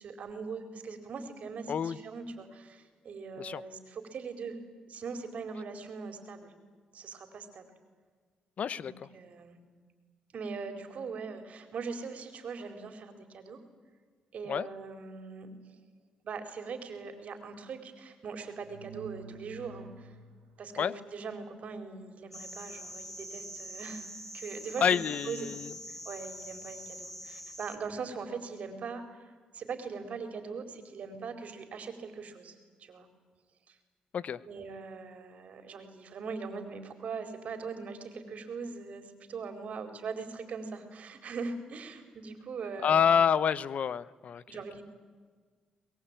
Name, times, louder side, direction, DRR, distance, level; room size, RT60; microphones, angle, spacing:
voice 1, 0.0-4.6 4.9-6.6 6.9-7.7 8.8-9.6 10.3-13.6 14.3-15.5 16.2-20.2 20.6-24.1 24.3-25.0 25.2-25.5 25.9-33.1 33.7-33.8 34.5-43.1 44.5-44.8, right 5 dB, 65° right, 7 dB, 4.4 m, -41 dB
voice 2, 8.6-8.9 14.5-14.7 20.8-20.9 24.8-25.7 34.1-34.4 42.8-44.4, left 7 dB, 65° left, 19 dB, 0.9 m, -27 dB
sound 1, 18.6-20.6 23.2-23.4, right 6 dB, 85° right, 1.6 m, -49 dB
sound 2, 22.3-27.8, equal, 10° left, 4.6 m, -44 dB
23.5 x 21.5 x 9.1 m, 1.5 s
supercardioid pair, 65°, 3 cm